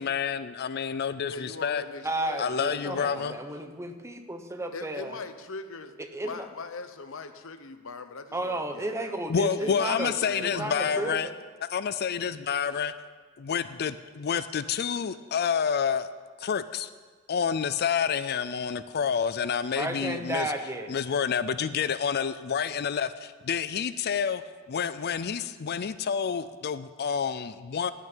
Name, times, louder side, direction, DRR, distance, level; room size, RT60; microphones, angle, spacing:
voice 1, 0.0-1.8 2.4-3.3 9.3-11.3 11.7-12.9 13.4-16.1 16.4-16.9 17.3-20.5 20.9-24.4 24.7-27.9, left 7 dB, 50° left, 14 dB, 0.4 m, -28 dB
voice 2, 1.2-3.4 4.7-5.9 6.2-9.2 9.6-11.1, left 3 dB, 65° left, 9 dB, 1.0 m, -41 dB
voice 3, 2.0-5.2 6.0-6.4 8.3-10.1 10.4-11.3 19.7-20.9, right 1 dB, 15° right, 6 dB, 1.0 m, -33 dB
16.0 x 6.3 x 9.0 m, 1.5 s
head